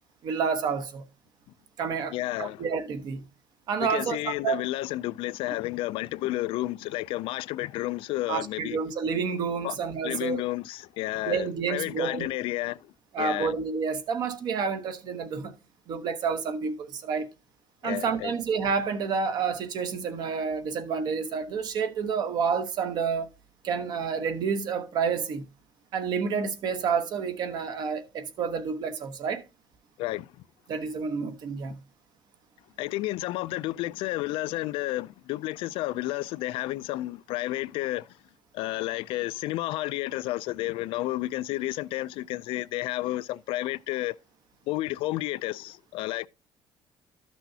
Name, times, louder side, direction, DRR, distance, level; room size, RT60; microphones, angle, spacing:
voice 1, 0.2-1.0 1.8-3.2 3.7-4.6 8.3-10.4 11.2-12.3 13.1-15.5 15.9-17.3 17.8-23.3 23.6-25.4 25.9-29.4 30.7-31.8, right 6 dB, 50° right, 1.1 m, -29 dB
voice 2, 2.1-2.6 3.8-8.8 9.6-9.7 10.0-12.9 13.2-13.6 17.8-18.3 30.0-30.3 32.8-38.1 38.5-44.2 44.7-46.3, left 17 dB, 90° left, 0.4 m, -31 dB
13.0 x 6.2 x 2.7 m
cardioid pair, 175°, 9 cm